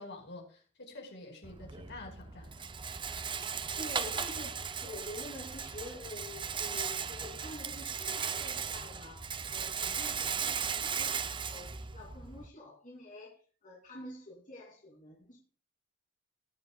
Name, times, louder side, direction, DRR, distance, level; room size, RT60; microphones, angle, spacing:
voice 1, 0.0-2.7, left 2 dB, 55° left, 4.9 m, -48 dB
Rattle, 1.4-12.5, right 6 dB, 20° right, 0.6 m, -37 dB
voice 2, 3.8-4.5 4.8-15.4, left 1 dB, 35° left, 2.9 m, -47 dB
20.5 x 7.8 x 2.3 m
head